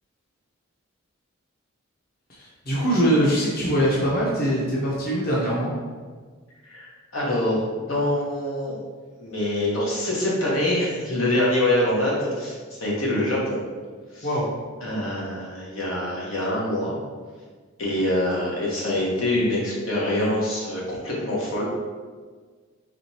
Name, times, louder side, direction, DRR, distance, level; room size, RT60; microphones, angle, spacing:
voice 1, 2.3-5.7 14.2-14.5, equal, 50° left, -6 dB, 1.0 m, -22 dB
voice 2, 6.6-8.8 9.2-13.6 14.1-14.3 14.8-16.9 17.8-21.6, left 1 dB, 85° left, -5 dB, 1.3 m, -25 dB
4.9 x 3.5 x 2.9 m, 1.5 s
head